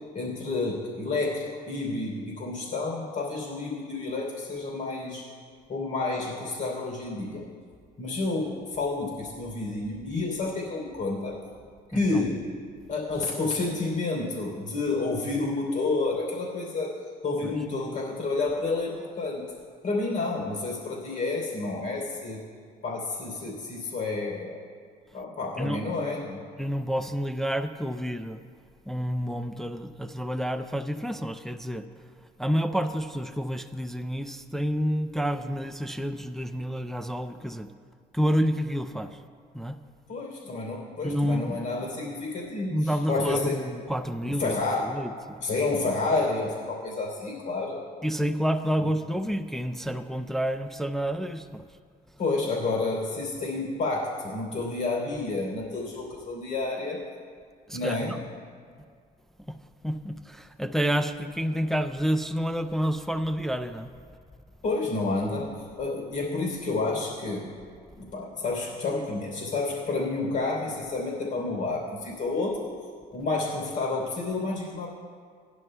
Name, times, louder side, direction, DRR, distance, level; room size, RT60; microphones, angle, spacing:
voice 1, 0.1-5.2 5.7-7.4 8.0-11.4 11.9-12.4 12.9-16.9 17.2-19.4 19.8-22.4 22.8-24.6 25.1-26.4 40.1-43.6 44.3-45.0 45.4-47.8 52.2-57.0 57.7-58.1 64.6-65.5 65.8-67.5 68.0-72.6 73.1-74.9, left 3 dB, 50° left, -3 dB, 3.2 m, -30 dB
voice 2, 11.9-12.2 17.4-17.5 25.6-25.8 26.6-28.4 28.9-31.9 32.4-37.7 38.1-39.2 39.5-39.8 41.0-41.6 42.7-45.4 48.0-51.7 57.7-58.2 59.5-59.6 59.8-63.9, equal, ahead, 8 dB, 0.3 m, -29 dB
18.5 x 11.0 x 2.2 m, 2.1 s
cardioid pair, 110°, 17 cm